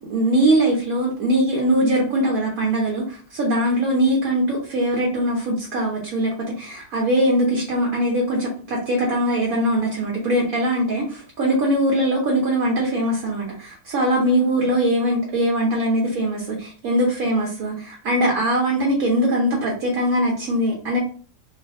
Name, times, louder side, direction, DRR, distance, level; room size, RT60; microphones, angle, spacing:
voice 1, 0.1-21.0, right 1 dB, 60° right, -2 dB, 1.2 m, -21 dB
3.3 x 2.5 x 3.6 m, 0.41 s
omnidirectional pair, 1.9 m